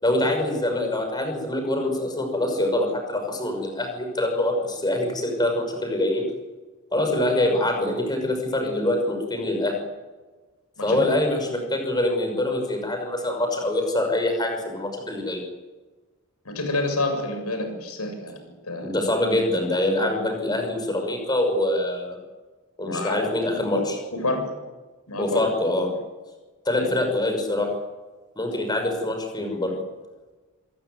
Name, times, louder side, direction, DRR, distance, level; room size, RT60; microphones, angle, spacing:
voice 1, 0.0-6.3 6.9-9.8 10.8-15.4 18.8-22.2 22.8-24.0 25.2-25.9 26.6-27.7 28.4-29.7, left 1 dB, 20° left, 4 dB, 5.9 m, -24 dB
voice 2, 16.5-18.4 18.7-18.9 22.9-23.3 23.8-23.9 24.1-24.5 25.1-25.4 26.8-26.9, left 2 dB, 85° left, 6 dB, 7.2 m, -28 dB
27.5 x 16.5 x 9.4 m, 1.3 s
head